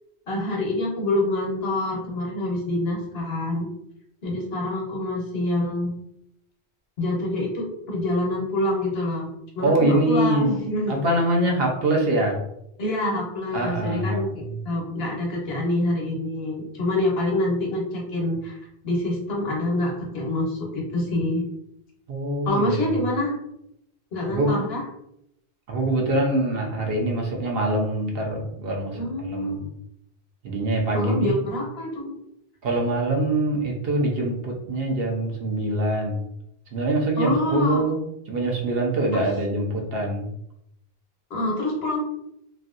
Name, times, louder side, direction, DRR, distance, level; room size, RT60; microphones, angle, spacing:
voice 1, 0.3-3.7 4.2-5.9 7.0-10.9 12.8-14.3 14.6-18.6 18.8-21.4 22.4-23.3 24.1-24.8 28.9-29.6 30.9-32.1 37.2-37.8 39.1-39.3 41.3-42.0, left 1 dB, 75° left, -2 dB, 1.2 m, -26 dB
voice 2, 9.6-10.5 10.9-12.4 13.5-14.6 22.1-23.0 24.3-24.5 25.7-29.7 30.4-31.4 32.6-36.2 36.7-38.0 38.3-40.3, right 1 dB, 70° right, 0 dB, 0.9 m, -24 dB
3.1 x 2.6 x 2.4 m, 0.78 s
omnidirectional pair, 1.0 m